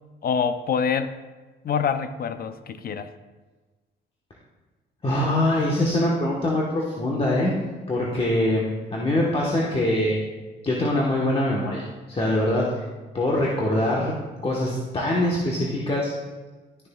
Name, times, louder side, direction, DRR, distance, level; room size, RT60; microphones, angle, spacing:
voice 1, 0.2-1.1 1.6-3.1, left 6 dB, 50° left, 11 dB, 0.6 m, -25 dB
voice 2, 5.0-7.5 7.9-10.2 10.6-12.8 13.1-14.1 14.4-16.1, left 1 dB, 30° left, -4 dB, 1.3 m, -23 dB
12.0 x 6.2 x 2.3 m, 1.3 s
cardioid pair, 90°, 20 cm